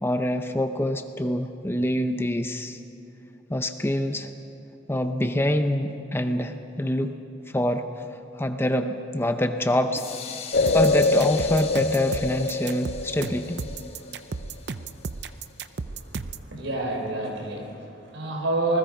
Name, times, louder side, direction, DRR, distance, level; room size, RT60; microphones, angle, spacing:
voice 1, 0.0-2.8 3.5-4.3 4.9-7.1 7.5-8.0 8.3-10.1 10.7-13.6, left 1 dB, 10° left, 7 dB, 0.7 m, -25 dB
sound 1, 10.0-15.8, left 7 dB, 30° left, 1.4 m, -41 dB
sound 2, 10.5-14.1, left 3 dB, 50° left, 0.4 m, -25 dB
sound 3, 10.7-16.5, right 4 dB, 55° right, 0.6 m, -34 dB
voice 2, 16.4-18.8, right 2 dB, 75° right, 1 dB, 4.6 m, -28 dB
27.0 x 20.0 x 5.3 m, 3.0 s
head